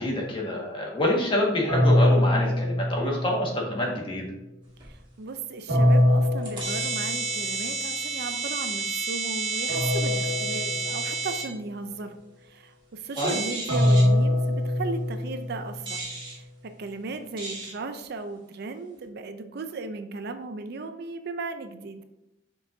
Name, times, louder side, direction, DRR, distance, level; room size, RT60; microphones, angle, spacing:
voice 1, 0.0-4.3 13.2-13.4, left 1 dB, 30° left, -2 dB, 1.7 m, -27 dB
sound 1, 1.7-3.7 5.7-7.5 9.7-11.5 13.7-15.9, left 1 dB, 85° right, 1.9 m, -23 dB
sound 2, 4.8-4.9 5.8-5.9 6.4-11.4 13.2-14.0 15.9-16.3 17.4-17.7, right 4 dB, 25° right, 2.0 m, -31 dB
voice 2, 4.8-16.0 16.3-22.0, right 3 dB, 60° right, 8 dB, 0.5 m, -36 dB
7.2 x 5.5 x 2.7 m, 0.89 s
head